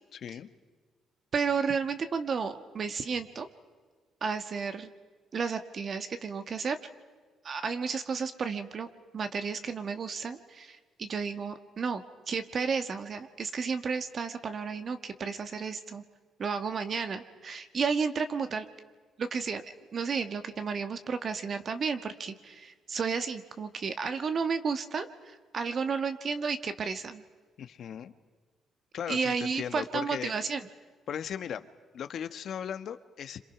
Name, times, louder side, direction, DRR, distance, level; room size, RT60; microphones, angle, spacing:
voice 1, 0.1-0.5 27.6-28.1 28.9-30.3 31.1-31.7 31.9-33.4, left 8 dB, 65° left, 11 dB, 1.2 m, -37 dB
voice 2, 1.3-3.5 4.2-4.9 5.3-6.8 7.4-8.9 9.1-16.0 16.4-18.7 19.2-19.6 19.9-27.2 29.1-30.7, right 5 dB, 50° right, 9 dB, 1.8 m, -32 dB
29.0 x 26.5 x 6.0 m, 1.5 s
cardioid pair, 90°, 0 cm